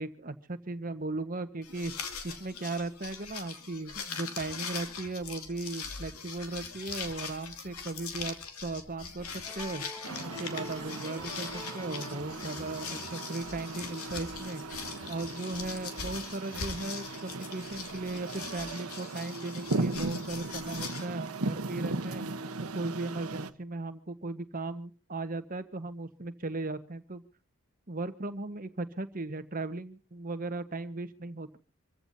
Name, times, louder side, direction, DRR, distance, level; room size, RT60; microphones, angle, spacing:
voice 1, 0.0-1.9 2.2-8.4 8.6-9.8 10.2-11.5 11.7-14.6 15.1-22.2 22.6-27.2 27.9-31.6, right 2 dB, 40° right, 10 dB, 1.3 m, -37 dB
sound 1, 1.6-21.0, left 5 dB, 85° left, 2.7 m, -41 dB
sound 2, 9.4-14.5, left 1 dB, 15° left, 2.2 m, -48 dB
sound 3, 10.0-23.5, right 2 dB, 80° right, 1.2 m, -38 dB
26.5 x 15.0 x 2.8 m, 0.37 s
head